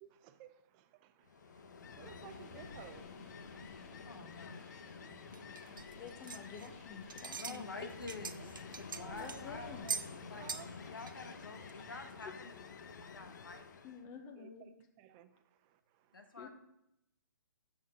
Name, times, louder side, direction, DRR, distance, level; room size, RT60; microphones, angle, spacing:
voice 1, 0.0-3.1 7.8-7.9 8.4-8.5 8.9-9.3 9.8-10.0 10.3-10.7 14.4-14.7 15.0-16.4, right 11 dB, 25° right, 0.4 m, -56 dB
Ocean, 1.2-14.0, left 5 dB, 60° left, 0.8 m, -50 dB
sound 1, 2.3-12.0, left 1 dB, 45° left, 2.2 m, -59 dB
voice 2, 4.0-4.6 7.4-8.5 8.8-9.8 10.2-12.5 12.9-13.7 16.1-16.5, left 3 dB, 85° left, 1.2 m, -48 dB
sound 2, 5.3-6.8 7.1-7.6 7.9-9.4 9.9-10.1 10.5-10.7 11.0-11.1 11.7-11.8, right 5 dB, 75° right, 0.6 m, -42 dB
voice 3, 5.9-7.9 9.2-9.9 13.8-14.6 16.4-16.5, left 6 dB, 25° left, 0.7 m, -49 dB
7.1 x 3.7 x 6.2 m
hypercardioid pair, 140°, 11 cm